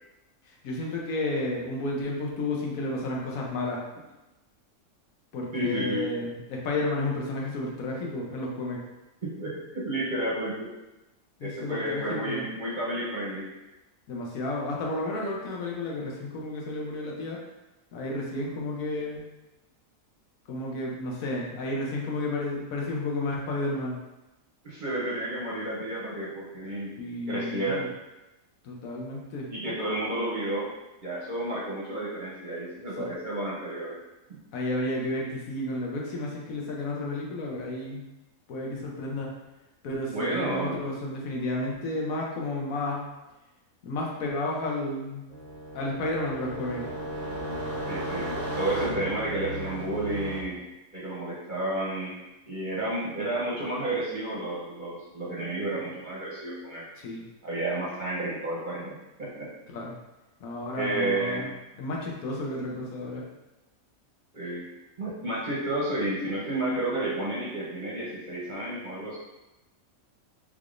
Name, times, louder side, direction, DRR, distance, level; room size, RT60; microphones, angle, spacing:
voice 1, 0.4-3.8 5.3-8.8 11.4-12.4 14.1-17.4 17.9-19.2 20.5-24.0 27.0-27.9 28.6-29.5 33.0-33.1 34.5-38.1 38.5-39.3 39.8-43.1 43.8-45.3 45.7-46.8 56.9-57.2 59.7-59.9 60.4-63.3, left 2 dB, 80° left, -2 dB, 1.1 m, -32 dB
voice 2, 5.5-6.1 9.2-10.7 11.4-13.5 24.6-26.9 27.3-27.8 29.5-30.7 31.0-34.0 40.1-40.8 47.9-48.3 48.6-50.6 50.9-52.1 52.5-56.8 57.4-59.5 60.7-61.5 64.3-64.7 65.0-69.2, right 1 dB, 40° right, -7 dB, 0.8 m, -31 dB
sound 1, 45.3-50.4, equal, 10° left, 0.9 m, -35 dB
3.5 x 3.4 x 2.5 m, 1.0 s
omnidirectional pair, 1.5 m